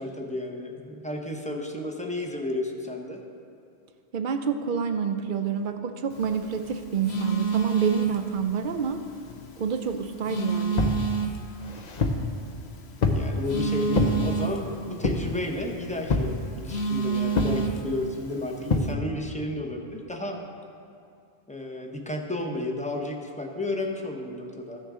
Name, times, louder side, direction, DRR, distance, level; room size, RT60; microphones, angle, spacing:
voice 1, 0.0-3.2 13.1-20.4 21.5-24.8, left 2 dB, 10° left, 1 dB, 0.7 m, -32 dB
voice 2, 4.1-9.0 9.6-10.9, right 6 dB, 55° right, 7 dB, 0.7 m, -28 dB
Telephone, 6.1-18.9, right 5 dB, 75° left, 1.0 m, -32 dB
sound 1, 10.8-11.0 11.6-12.3 13.0-13.3 13.9-14.2 15.0-15.4 16.1-16.4 17.3-17.6 18.7-18.9, left 3 dB, 45° left, 0.7 m, -25 dB
15.0 x 6.5 x 3.7 m, 2.4 s
omnidirectional pair, 1.1 m